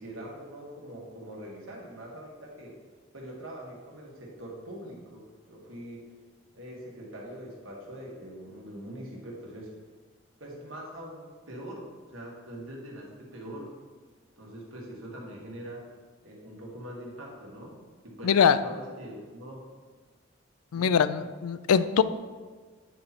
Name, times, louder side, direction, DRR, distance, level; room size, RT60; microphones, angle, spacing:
voice 1, 0.0-2.8 3.1-6.1 6.5-9.7 10.4-13.7 14.4-15.8 16.2-17.8 18.0-19.6 20.7-21.0, right 1 dB, 65° right, -2 dB, 1.8 m, -43 dB
voice 2, 18.2-18.6 20.7-22.0, left 7 dB, 90° left, 13 dB, 0.4 m, -22 dB
9.1 x 4.3 x 4.3 m, 1.5 s
head